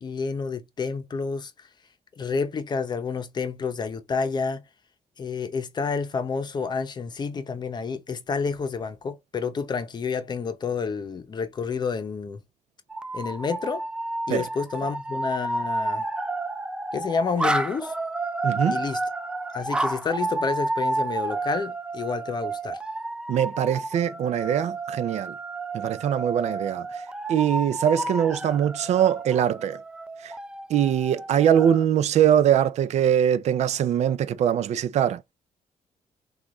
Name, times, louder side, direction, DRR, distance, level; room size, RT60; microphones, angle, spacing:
voice 1, 0.0-1.5 2.2-4.6 5.2-12.4 13.1-13.9 14.3-16.0 16.9-17.9 18.7-19.0 19.5-22.8, left 5 dB, 35° left, 0.7 m, -29 dB
sound 1, 12.9-31.8, right 2 dB, 5° right, 0.3 m, -31 dB
voice 2, 18.4-18.8 23.3-25.3 25.7-26.9 27.3-29.8 30.2-30.3 30.7-35.2, right 9 dB, 65° right, 0.5 m, -22 dB
6.2 x 2.4 x 3.0 m
cardioid pair, 155°, 12 cm